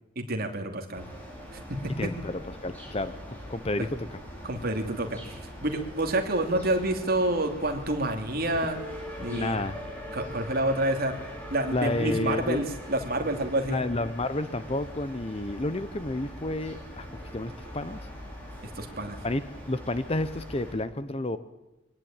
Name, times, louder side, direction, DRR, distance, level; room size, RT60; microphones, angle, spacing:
voice 1, 0.2-1.0 1.7-2.1 4.4-5.2 5.6-8.8 9.2-9.6 10.1-11.1 11.5-13.8 18.8-19.2, right 1 dB, 45° right, 4 dB, 2.7 m, -28 dB
sound 1, 0.9-20.7, equal, 10° left, 6.0 m, -42 dB
voice 2, 2.0-2.3 2.6-3.9 9.3-9.8 11.7-12.7 13.7-17.1 17.3-18.0 19.2-19.4 19.7-21.4, left 2 dB, 30° left, 13 dB, 0.8 m, -30 dB
23.0 x 18.0 x 9.0 m, 0.99 s
head